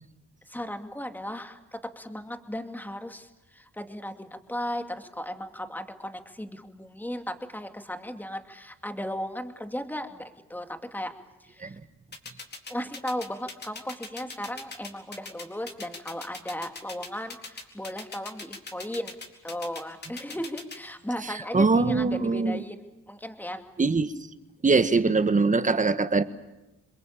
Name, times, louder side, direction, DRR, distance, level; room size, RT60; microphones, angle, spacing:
voice 1, 0.5-11.1 11.4-11.8 12.7-19.2 19.4-23.6, equal, 5° left, 6 dB, 2.5 m, -36 dB
sound 1, 12.1-20.8, left 3 dB, 35° left, 4.2 m, -39 dB
voice 2, 21.2-22.6 23.8-24.1 24.6-26.2, right 4 dB, 25° right, 11 dB, 1.5 m, -23 dB
27.5 x 22.0 x 8.7 m, 1.0 s
cardioid pair, 90°, 30 cm